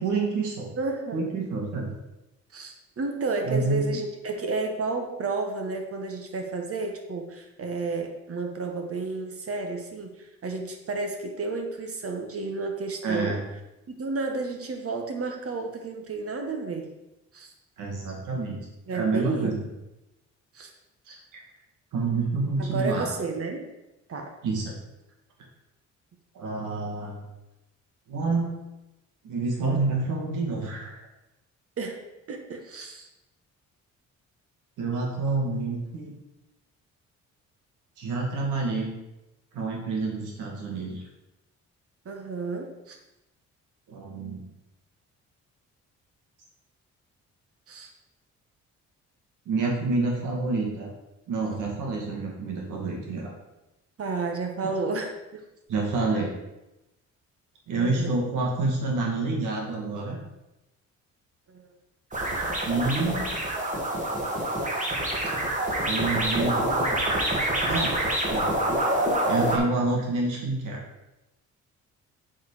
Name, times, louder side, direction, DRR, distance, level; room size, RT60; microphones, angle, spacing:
voice 1, 0.0-0.7 1.1-1.9 3.4-3.8 13.0-13.4 17.8-18.6 18.9-19.7 21.1-21.2 21.9-23.1 24.4-24.8 26.3-27.2 28.1-28.5 29.2-31.0 34.8-36.1 38.0-38.9 39.5-41.0 43.9-44.4 49.5-50.9 51.3-53.3 55.7-56.3 57.7-60.2 62.6-63.2 65.9-67.0 67.7-67.9 68.3-68.5 69.3-70.8, right 3 dB, 85° right, -1 dB, 2.3 m, -28 dB
voice 2, 0.7-1.2 2.5-13.4 13.9-16.9 17.3-17.5 18.9-19.6 20.5-20.7 22.6-23.7 24.1-24.3 31.8-32.0 32.3-33.1 42.0-43.0 47.7-47.9 54.0-55.4 57.7-58.1 61.5-61.7, right 3 dB, 50° right, 4 dB, 1.5 m, -31 dB
sound 1, 62.1-69.6, right 1 dB, 25° right, 2.2 m, -26 dB
7.9 x 4.8 x 5.0 m, 0.95 s
cardioid pair, 90°, 30 cm